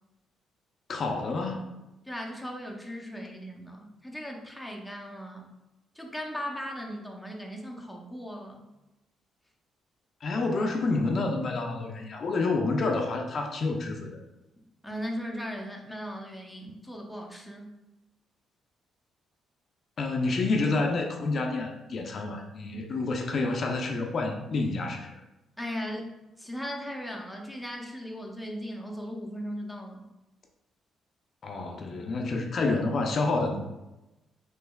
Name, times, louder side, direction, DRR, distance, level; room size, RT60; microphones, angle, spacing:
voice 1, 0.9-1.7 10.2-14.1 20.0-25.1 31.4-33.6, left 3 dB, 50° left, 2 dB, 0.4 m, -28 dB
voice 2, 2.0-5.5 5.9-8.7 14.8-17.7 25.6-30.1, equal, 5° left, 0 dB, 0.5 m, -38 dB
3.3 x 3.1 x 2.2 m, 0.99 s
cardioid pair, 90°, 0 cm